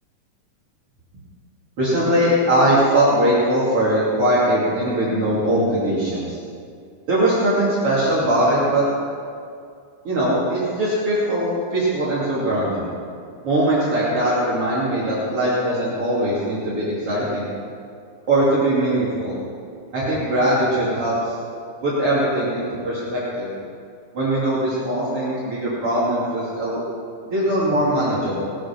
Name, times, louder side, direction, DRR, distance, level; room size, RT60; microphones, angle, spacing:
voice 1, 1.8-6.4 7.1-8.9 10.1-12.9 13.4-17.5 18.3-19.4 19.9-21.3 21.8-23.5 24.1-26.8 27.3-28.6, right 1 dB, 50° right, -9 dB, 3.7 m, -21 dB
19.5 x 10.0 x 6.0 m, 2.3 s
omnidirectional pair, 3.4 m